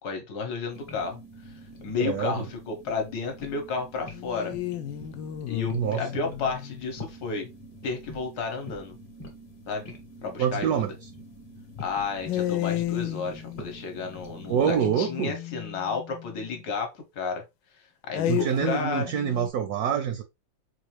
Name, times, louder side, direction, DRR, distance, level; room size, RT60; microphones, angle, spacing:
voice 1, 0.0-1.2 1.4-4.5 5.5-7.5 7.8-9.0 9.7-9.9 10.2-10.9 11.8-17.4 18.1-19.1, left 4 dB, 60° left, 1.3 m, -32 dB
sound 1, 0.7-14.8, left 1 dB, 35° left, 0.9 m, -45 dB
voice 2, 2.0-2.5 5.7-6.1 10.4-10.9 14.5-15.3 18.3-20.2, right 8 dB, 75° right, 0.9 m, -26 dB
sound 2, 4.1-6.9 12.3-16.6 18.1-19.5, left 12 dB, 80° left, 1.3 m, -33 dB
4.3 x 2.5 x 3.0 m
omnidirectional pair, 2.1 m